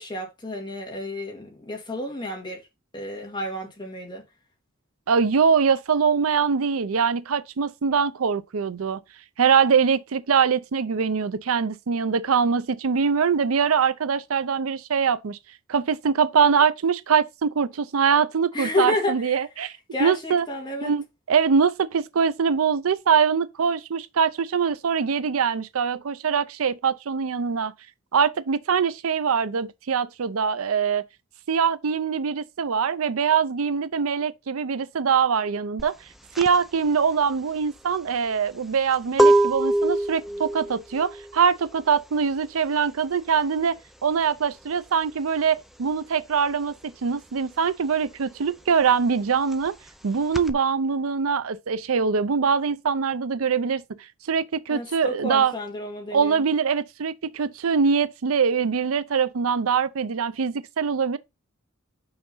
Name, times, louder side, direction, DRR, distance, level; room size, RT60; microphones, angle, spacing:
voice 1, 0.0-2.6 2.9-4.2 18.5-19.4 19.9-20.9 54.7-56.4, left 2 dB, 20° left, 2.0 m, -30 dB
voice 2, 5.1-9.0 9.4-15.4 15.7-19.7 20.0-20.5 20.8-27.7 28.1-31.0 31.5-35.9 36.4-49.8 50.0-53.8 54.3-55.5 56.1-61.2, right 6 dB, 85° right, 0.5 m, -23 dB
sound 1, 35.8-46.0 46.3-50.5, right 1 dB, ahead, 0.5 m, -25 dB
5.8 x 3.9 x 5.5 m
head